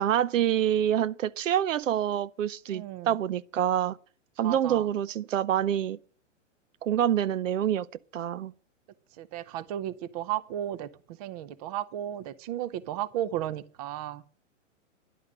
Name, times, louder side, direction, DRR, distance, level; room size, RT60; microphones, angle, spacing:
voice 1, 0.0-4.0 4.4-6.0 6.8-7.9 8.1-8.5, right 10 dB, 75° right, 0.7 m, -26 dB
voice 2, 2.7-3.1 4.4-4.8 9.2-10.9 11.2-14.2, right 12 dB, 30° right, 0.7 m, -34 dB
11.0 x 8.8 x 7.7 m
hypercardioid pair, 150°, 38 cm